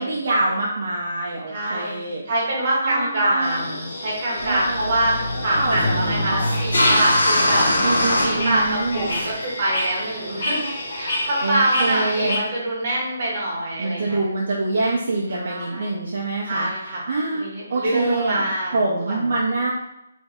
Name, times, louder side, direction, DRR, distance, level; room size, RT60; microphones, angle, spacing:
voice 1, 0.0-2.2 2.8-3.7 4.4-5.2 5.6-6.6 7.8-9.1 11.4-12.4 13.8-16.7 17.1-17.4 17.7-18.4 18.7-19.7, right 2 dB, 45° right, -4 dB, 0.5 m, -25 dB
voice 2, 1.5-2.0 2.3-7.7 8.2-10.6 10.9-14.2 15.3-15.9 16.4-17.0 17.3-19.3, right 1 dB, 25° right, -5 dB, 1.0 m, -25 dB
sound 1, 3.4-12.4, left 1 dB, 55° left, 1.0 m, -30 dB
sound 2, 4.4-9.3, left 1 dB, 85° left, 1.1 m, -22 dB
3.1 x 2.6 x 3.5 m, 0.87 s
hypercardioid pair, 175°, 0 cm